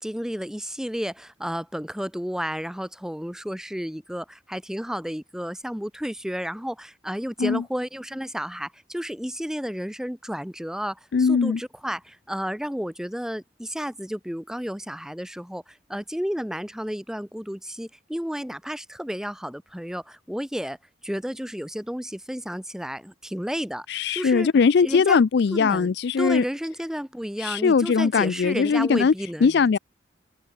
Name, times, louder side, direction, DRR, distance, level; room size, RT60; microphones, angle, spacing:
voice 1, 0.0-20.8 21.0-23.9 24.1-24.5 24.8-25.2 25.5-29.8, equal, 5° right, 1.0 m, -32 dB
voice 2, 11.1-11.6 23.9-26.4 27.4-29.1 29.4-29.8, left 5 dB, 65° left, 0.4 m, -20 dB
head